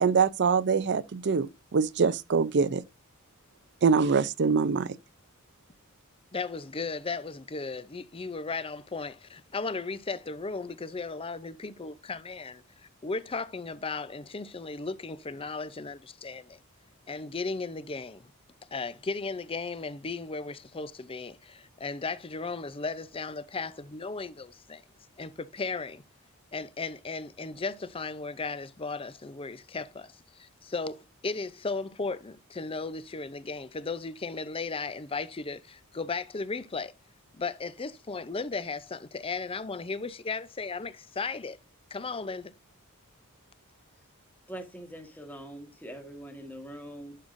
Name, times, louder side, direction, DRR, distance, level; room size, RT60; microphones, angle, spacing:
voice 1, 0.0-2.8 3.8-5.0, right 5 dB, 50° right, 0.5 m, -24 dB
voice 2, 6.3-16.6 17.1-18.3 18.7-24.8 25.2-26.0 26.5-36.9 37.3-41.6 41.9-42.5, left 4 dB, 25° left, 0.6 m, -36 dB
voice 3, 44.5-47.2, right 1 dB, 10° left, 1.5 m, -43 dB
11.0 x 6.4 x 2.6 m
head